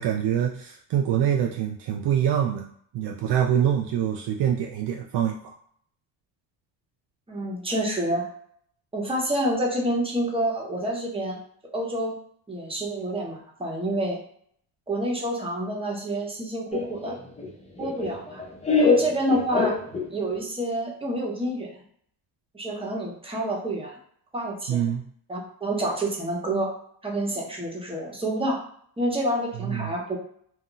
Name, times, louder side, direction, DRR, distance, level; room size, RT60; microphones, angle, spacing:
voice 1, 0.0-2.7 2.9-5.5 24.7-25.0 29.5-30.0, right 9 dB, 60° right, 2 dB, 0.5 m, -25 dB
voice 2, 7.3-8.3 8.9-11.4 11.7-12.1 12.5-14.2 14.9-17.1 17.8-18.4 18.8-19.8 20.1-21.7 22.5-24.0 24.3-24.8 25.3-26.7 27.0-28.6 29.0-30.2, right 1 dB, 10° right, -2 dB, 1.0 m, -28 dB
Laughter, 16.7-20.4, left 3 dB, 15° left, 0.6 m, -25 dB
2.4 x 2.1 x 3.8 m, 0.64 s
supercardioid pair, 75°, 47 cm